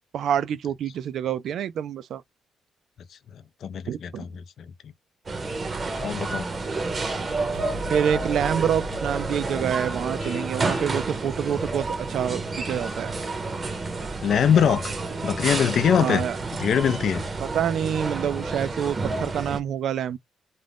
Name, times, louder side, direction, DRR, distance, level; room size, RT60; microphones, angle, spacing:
voice 1, 0.1-2.2 3.9-4.2 7.9-13.1 16.0-16.4 17.5-20.2, right 9 dB, 70° right, 0.3 m, -27 dB
voice 2, 3.6-4.7 6.0-6.4 14.2-14.9 15.2-16.2 16.6-17.2, left 8 dB, 65° left, 0.4 m, -23 dB
sound 1, 5.3-19.6, right 3 dB, 35° right, 0.7 m, -30 dB
sound 2, 7.5-10.8, left 1 dB, 85° right, 0.9 m, -39 dB
Vehicle horn car horn honking, 10.2-11.0, left 1 dB, 25° left, 0.7 m, -36 dB
2.5 x 2.1 x 3.3 m
cardioid pair, 90°, 0 cm